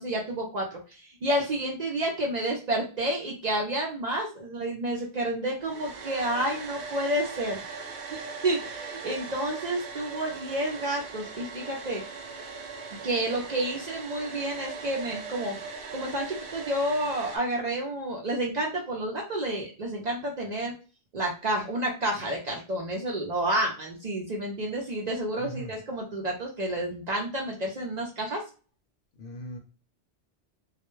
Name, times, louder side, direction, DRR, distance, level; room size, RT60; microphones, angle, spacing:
voice 1, 0.0-7.6 8.1-12.0 13.0-15.6 15.9-20.7 21.1-28.4, right 1 dB, 50° right, -1 dB, 0.6 m, -30 dB
Domestic sounds home sounds, 5.6-17.4, right 4 dB, 80° right, 0.8 m, -40 dB
voice 2, 25.4-25.8 29.2-29.6, right 1 dB, 60° left, 2 dB, 0.7 m, -39 dB
2.3 x 2.1 x 3.0 m, 0.35 s
omnidirectional pair, 1.1 m